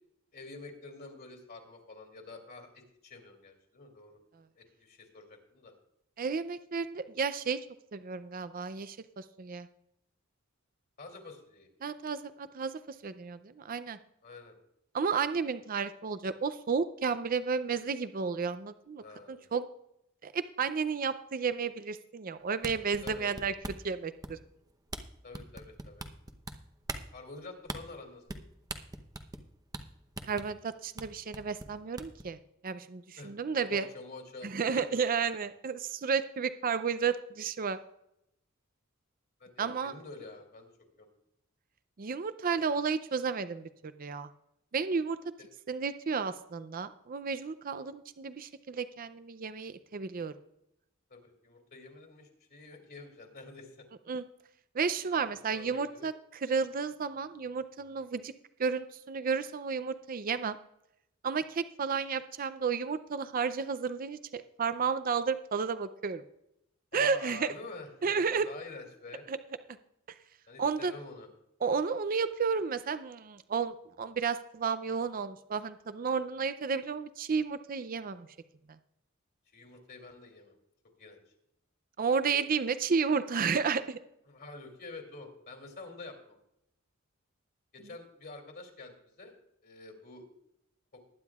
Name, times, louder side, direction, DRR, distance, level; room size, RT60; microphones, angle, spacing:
voice 1, 0.3-4.2 4.6-5.7 11.0-11.7 14.2-14.5 19.0-19.5 23.0-23.3 25.2-26.0 27.1-28.4 33.2-33.3 33.7-35.4 39.4-40.7 41.0-41.1 45.4-45.5 51.1-53.9 55.5-56.1 66.9-69.3 70.5-71.3 79.5-80.5 81.0-81.2 84.3-86.4 87.7-89.3 89.6-90.2, left 3 dB, 50° left, 2 dB, 2.6 m, -48 dB
voice 2, 6.2-7.6 7.9-9.7 11.8-14.0 14.9-19.7 20.2-23.5 23.8-24.4 30.3-32.4 32.6-33.9 34.4-37.8 39.6-39.9 42.0-44.3 44.7-45.2 45.7-50.3 54.1-54.2 54.7-56.1 56.4-58.3 58.6-60.6 61.2-66.2 66.9-67.5 68.0-68.5 69.3-69.4 70.6-70.9 71.6-78.3 82.0-84.0, right 5 dB, 45° right, 13 dB, 0.5 m, -32 dB
sound 1, 22.5-23.9 24.2-24.6 24.9-25.0 25.3-26.5 26.9-27.1 27.7-27.8 28.3-28.4 28.7-29.5 29.7-29.8 30.2-30.5 31.0-31.1 31.3-32.2, right 2 dB, 20° right, 0.8 m, -40 dB
20.5 x 9.8 x 2.4 m, 0.81 s
head